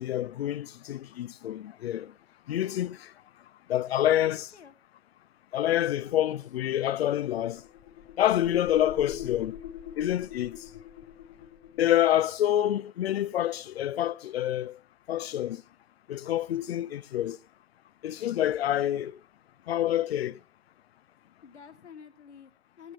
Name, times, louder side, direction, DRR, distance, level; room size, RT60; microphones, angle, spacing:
voice 1, 0.0-2.1 2.5-3.1 3.7-4.4 5.5-7.6 8.2-9.5 10.0-10.6 11.8-14.8 15.1-15.6 16.1-17.4 18.0-19.1 19.7-20.4, left 12 dB, 65° left, 0.6 m, -27 dB
voice 2, 4.2-4.8 5.6-6.4 19.4-19.7 21.4-22.9, left 7 dB, 80° left, 1.8 m, -51 dB
sound 1, 7.5-11.9, left 10 dB, 35° left, 1.1 m, -43 dB
17.5 x 17.0 x 3.0 m
hypercardioid pair, 125°, 33 cm